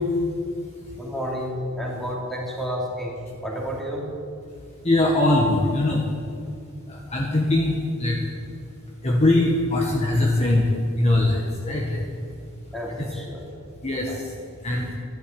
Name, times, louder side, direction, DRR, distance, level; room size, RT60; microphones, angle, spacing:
voice 1, 0.7-4.2 12.7-13.5 14.1-14.3, equal, ahead, -3 dB, 2.8 m, -31 dB
voice 2, 4.8-6.0 6.9-8.2 9.0-10.7 11.0-12.1 13.8-14.1 14.6-14.9, left 2 dB, 30° left, -2 dB, 1.5 m, -21 dB
12.5 x 12.0 x 8.6 m, 2.4 s
head